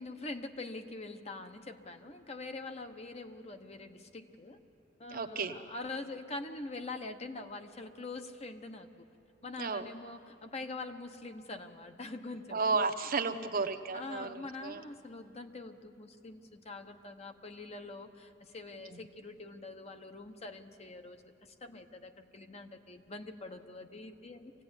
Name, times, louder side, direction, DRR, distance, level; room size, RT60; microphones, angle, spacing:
voice 1, 0.0-4.6 5.0-8.9 9.4-12.7 13.2-13.5 13.9-24.5, left 2 dB, 35° left, 6 dB, 1.1 m, -44 dB
voice 2, 5.1-5.6 9.6-9.8 12.5-14.8 18.9-19.0, right 4 dB, 50° right, 7 dB, 1.0 m, -33 dB
25.0 x 16.5 x 9.8 m, 2.7 s
head